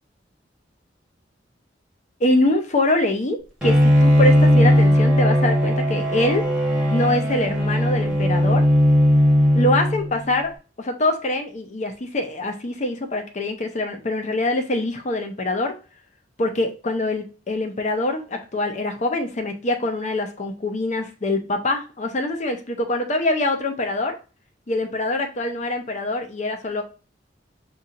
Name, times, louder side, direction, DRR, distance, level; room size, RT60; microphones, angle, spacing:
voice 1, 2.2-6.4 6.9-8.6 9.5-10.5 10.8-15.7 16.4-24.2 24.7-26.8, left 2 dB, 40° left, 5 dB, 0.7 m, -24 dB
Bowed string instrument, 3.6-10.3, equal, 5° right, 1.0 m, -18 dB
5.5 x 2.8 x 2.4 m, 0.35 s
head